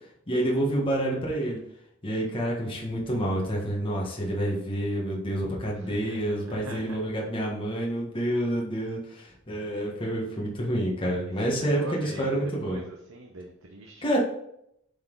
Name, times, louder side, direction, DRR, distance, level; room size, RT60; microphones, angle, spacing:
voice 1, 0.3-1.6 2.0-12.8 14.0-14.2, right 1 dB, 25° left, -3 dB, 1.5 m, -28 dB
voice 2, 5.7-7.1 11.4-14.2, right 1 dB, 90° right, 1 dB, 0.9 m, -42 dB
8.5 x 4.1 x 3.9 m, 0.76 s
head